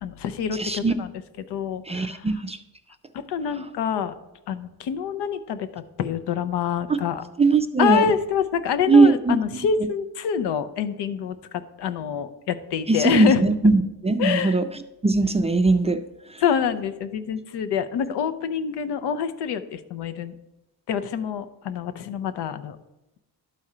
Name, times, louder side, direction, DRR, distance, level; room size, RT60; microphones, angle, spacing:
voice 1, 0.0-1.1 1.5-2.2 3.3-4.2 4.5-7.2 7.8-11.4 11.8-13.4 14.2-14.6 16.4-20.3 20.9-22.8, left 7 dB, 85° left, 10 dB, 0.7 m, -26 dB
voice 2, 0.5-0.9 1.9-2.6 6.9-7.0 7.4-8.1 8.9-9.6 12.9-14.7 15.0-16.0, right 3 dB, 15° right, 8 dB, 0.3 m, -20 dB
11.5 x 4.2 x 4.9 m, 0.97 s
cardioid pair, 115°, 40 cm